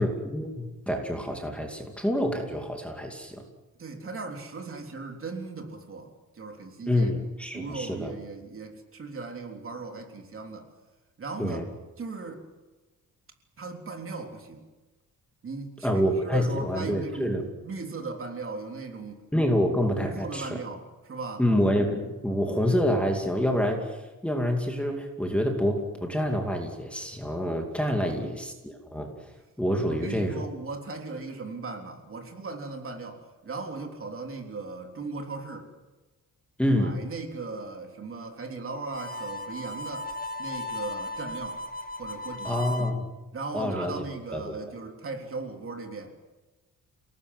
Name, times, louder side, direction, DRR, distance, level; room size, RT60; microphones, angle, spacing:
voice 1, 0.0-3.4 6.9-8.1 11.4-11.6 15.8-17.4 19.3-20.6 21.4-29.3 29.6-30.4 36.6-37.0 42.4-43.1 43.5-44.0 44.3-44.5, equal, 5° left, 2 dB, 2.5 m, -27 dB
voice 2, 3.8-7.1 7.5-10.7 11.2-11.7 12.0-12.4 13.6-14.7 15.4-17.4 17.6-19.2 20.0-21.4 27.9-28.3 29.8-35.7 36.7-40.1 40.4-41.6 42.0-42.6 43.3-46.1, right 3 dB, 40° right, 3 dB, 3.5 m, -37 dB
Harmonica, 38.9-42.9, left 1 dB, 25° left, 1.8 m, -36 dB
29.5 x 19.0 x 7.8 m, 1.2 s
wide cardioid pair, 170°, 34 cm